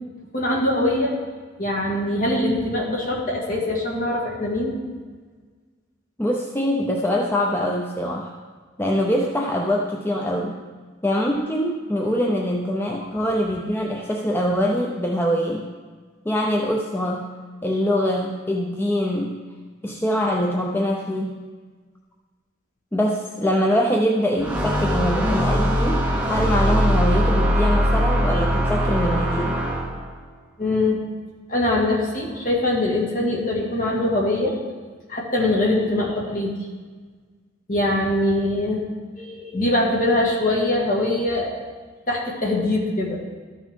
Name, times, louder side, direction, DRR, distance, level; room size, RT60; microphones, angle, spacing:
voice 1, 0.3-1.2 1.6-4.8 30.6-31.0 31.5-34.6 35.1-36.5 37.7-38.8 39.2-41.5 42.1-43.2, left 1 dB, 45° left, -2 dB, 1.9 m, -22 dB
voice 2, 6.2-8.3 8.8-10.5 11.0-15.6 16.3-17.3 17.6-19.4 19.8-21.4 22.9-29.6, equal, 10° left, 0 dB, 0.5 m, -23 dB
sound 1, 24.4-30.1, equal, 5° right, 1.0 m, -21 dB
13.0 x 6.1 x 3.6 m, 1.5 s
head